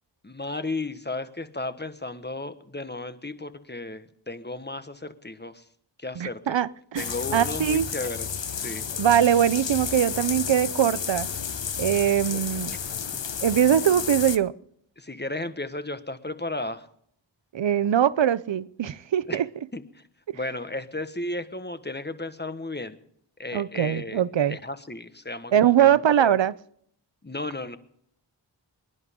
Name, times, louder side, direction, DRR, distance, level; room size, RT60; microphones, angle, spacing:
voice 1, 0.2-5.6 6.0-6.6 7.0-8.3 8.5-8.9 12.3-12.4 12.7-12.8 15.0-16.9 19.3-19.4 19.7-20.0 20.3-23.0 23.4-26.4 27.2-27.8, left 2 dB, 25° left, 1.4 m, -34 dB
voice 2, 6.2-7.9 9.0-11.3 11.8-12.7 13.4-14.5 17.5-19.5 20.3-20.4 23.5-24.6 25.5-26.6, right 10 dB, 85° right, 0.6 m, -22 dB
sound 1, 7.0-14.4, left 7 dB, 80° left, 0.9 m, -32 dB
25.5 x 11.0 x 3.7 m
wide cardioid pair, 45°, 44 cm